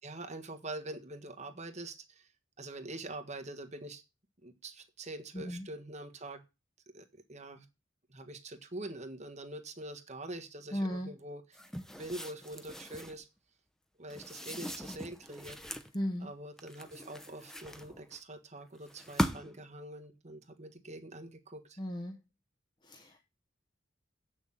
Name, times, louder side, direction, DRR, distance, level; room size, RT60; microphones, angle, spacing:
voice 1, 0.0-2.3 2.6-4.0 4.4-6.4 6.9-7.6 8.1-11.6 11.9-13.3 14.0-15.6 16.2-21.8, right 2 dB, 35° right, 5 dB, 1.5 m, -44 dB
voice 2, 5.3-5.7 10.7-11.1 15.9-16.3 21.8-22.2 22.8-23.2, equal, 25° left, 4 dB, 1.0 m, -36 dB
sound 1, 11.5-13.2 14.1-15.9 16.6-18.2 18.9-19.7, equal, 5° left, 0.7 m, -39 dB
8.3 x 6.5 x 7.3 m, 0.27 s
head